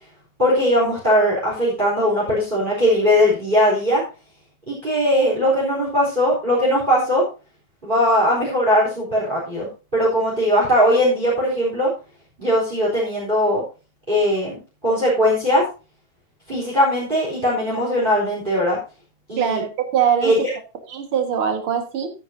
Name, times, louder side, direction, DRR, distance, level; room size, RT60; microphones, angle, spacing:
voice 1, 0.4-4.0 4.7-7.2 7.8-11.9 12.4-13.6 14.1-14.6 14.8-15.6 16.5-18.8 19.3-19.6 20.2-20.5, equal, 15° right, -4 dB, 3.8 m, -19 dB
voice 2, 19.4-20.3 20.9-22.1, right 8 dB, 50° right, 6 dB, 2.3 m, -22 dB
14.0 x 9.8 x 2.7 m, 0.32 s
omnidirectional pair, 3.3 m